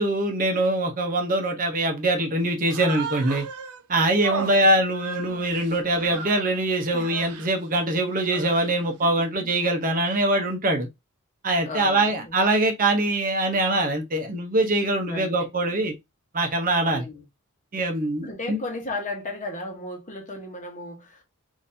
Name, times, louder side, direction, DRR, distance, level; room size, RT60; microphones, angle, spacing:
voice 1, 0.0-3.5 3.9-10.9 11.4-15.9 16.3-17.1 17.7-18.6, right 1 dB, 40° right, 0.8 m, -23 dB
Human voice, 2.6-3.8 4.2-6.5 6.9-7.5 8.1-8.9, right 5 dB, 85° right, 0.6 m, -36 dB
voice 2, 4.3-4.8 6.9-7.1 9.0-9.1 11.6-12.3 15.1-15.5 16.9-17.2 18.2-21.2, left 2 dB, 35° left, 1.0 m, -35 dB
3.8 x 2.6 x 2.6 m
head